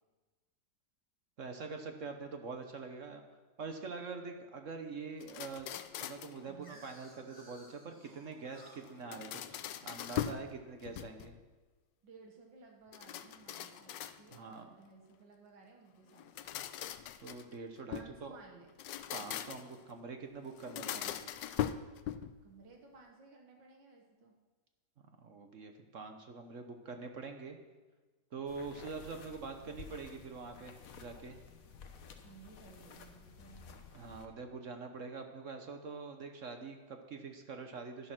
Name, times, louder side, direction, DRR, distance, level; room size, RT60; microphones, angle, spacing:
voice 1, 1.4-3.2 3.6-5.7 6.0-11.3 14.3-14.8 17.2-18.4 19.1-21.3 25.2-27.6 28.3-31.4 33.9-38.1, right 4 dB, 50° right, 5 dB, 1.1 m, -45 dB
sound 1, 5.2-6.4 8.8-10.5 10.8-11.4 12.9-14.5 16.1-18.2 18.7-19.8 20.6-22.4, left 11 dB, 80° left, 1.3 m, -41 dB
sound 2, 6.1-10.9, equal, 10° left, 2.7 m, -60 dB
voice 2, 6.4-6.8 12.0-16.6 17.9-18.7 22.4-24.4 32.2-33.8, right 4 dB, 90° right, 1 dB, 2.1 m, -57 dB
sound 3, 28.5-34.3, left 6 dB, 55° left, 1.3 m, -53 dB
11.0 x 11.0 x 6.0 m, 1.3 s
omnidirectional pair, 1.9 m